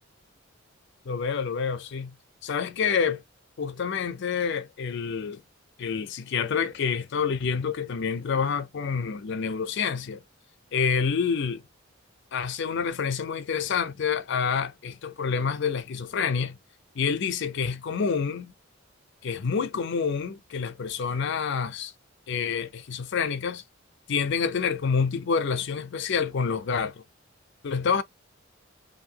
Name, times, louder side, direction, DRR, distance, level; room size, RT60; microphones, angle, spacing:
voice 1, 1.1-2.1 2.4-3.2 3.6-5.4 5.8-10.2 10.7-11.6 12.3-16.6 17.0-18.5 19.2-21.9 22.3-23.6 24.1-27.0 27.6-28.0, left 6 dB, 60° left, 0.5 m, -28 dB
2.7 x 2.6 x 2.7 m
head